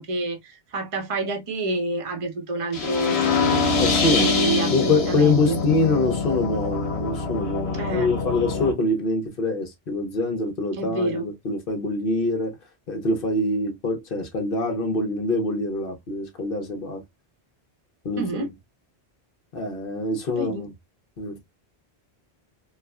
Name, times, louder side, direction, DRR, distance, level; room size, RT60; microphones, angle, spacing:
voice 1, 0.0-5.6 7.7-8.1 10.7-11.3 18.2-18.5 20.3-20.7, right 2 dB, 35° right, 0.7 m, -28 dB
sound 1, 2.7-8.7, left 4 dB, 70° left, 1.4 m, -24 dB
voice 2, 3.8-4.3 4.7-12.6 12.9-17.0 18.0-18.5 19.5-20.7 21.2-21.4, left 2 dB, 55° left, 1.1 m, -25 dB
4.5 x 2.1 x 2.3 m
omnidirectional pair, 1.1 m